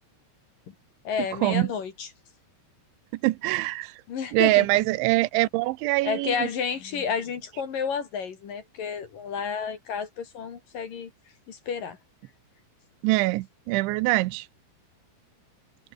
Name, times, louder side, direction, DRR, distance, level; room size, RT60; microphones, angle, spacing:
voice 1, 1.1-2.1 4.1-4.7 6.0-11.1 11.5-12.0, left 6 dB, 50° left, 3.5 m, -31 dB
voice 2, 3.2-4.0 4.3-6.5 13.0-14.5, right 20 dB, 80° right, 2.9 m, -23 dB
omnidirectional pair, 5.8 m